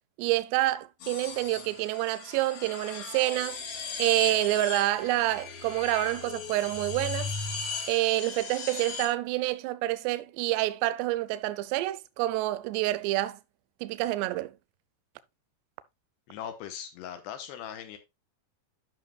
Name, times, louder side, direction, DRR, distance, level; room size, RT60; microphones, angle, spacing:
voice 1, 0.2-3.6 4.0-7.3 7.9-13.4 13.8-14.5, right 17 dB, 80° right, 2.6 m, -28 dB
sound 1, 1.0-9.1, left 5 dB, 60° left, 4.0 m, -37 dB
voice 2, 16.3-18.0, left 9 dB, 80° left, 2.9 m, -39 dB
12.5 x 5.8 x 2.3 m
omnidirectional pair, 5.1 m